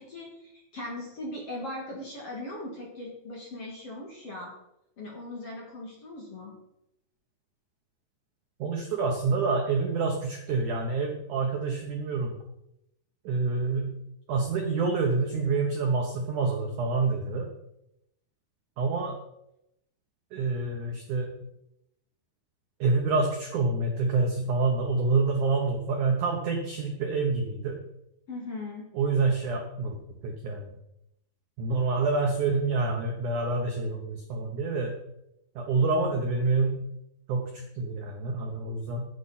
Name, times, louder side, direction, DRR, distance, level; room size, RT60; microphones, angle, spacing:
voice 1, 0.0-4.5 5.0-6.5 28.3-28.9, left 1 dB, 45° left, -2 dB, 2.2 m, -39 dB
voice 2, 8.6-12.3 13.2-13.9 14.3-17.5 18.8-19.2 20.3-21.3 22.8-27.8 28.9-29.9 30.2-30.7 31.6-34.9 35.6-36.7 37.3-39.1, right 3 dB, 80° right, 1 dB, 1.7 m, -27 dB
14.5 x 8.2 x 4.2 m, 0.83 s
omnidirectional pair, 5.5 m